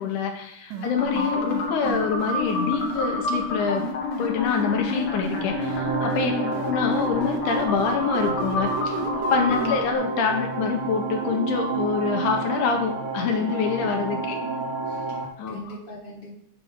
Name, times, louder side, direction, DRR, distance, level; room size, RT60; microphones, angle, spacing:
voice 1, 0.0-3.9 4.2-6.3 6.6-9.0 9.3-14.4 15.4-15.7, left 5 dB, 80° left, 3 dB, 2.4 m, -26 dB
voice 2, 0.7-1.1 6.2-6.6 9.5-9.9 14.9-15.2 15.5-16.3, left 1 dB, 20° right, -7 dB, 1.8 m, -36 dB
sound 1, 0.7-3.0 3.8-5.8 6.1-9.7, right 8 dB, 85° right, 2.4 m, -34 dB
sound 2, 1.0-9.9, left 3 dB, 55° left, 1.8 m, -29 dB
sound 3, 5.2-15.2, right 4 dB, 55° right, 1.6 m, -30 dB
8.2 x 6.7 x 3.6 m, 0.73 s
omnidirectional pair, 3.7 m